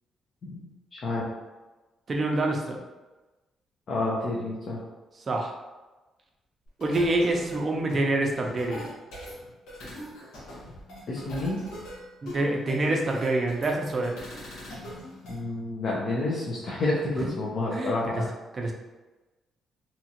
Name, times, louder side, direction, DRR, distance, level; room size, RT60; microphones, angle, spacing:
voice 1, 0.4-1.3 3.9-4.8 11.1-11.6 15.3-18.3, left 2 dB, 55° left, -5 dB, 0.6 m, -29 dB
voice 2, 2.1-2.8 5.3-5.5 6.8-8.8 12.2-14.1 17.2-17.3 17.7-18.2 18.5-18.7, right 2 dB, 40° right, 1 dB, 0.5 m, -26 dB
sound 1, 6.7-15.4, equal, 85° left, 1.0 m, -42 dB
2.8 x 2.4 x 2.8 m, 1.1 s
cardioid pair, 90°, 0 cm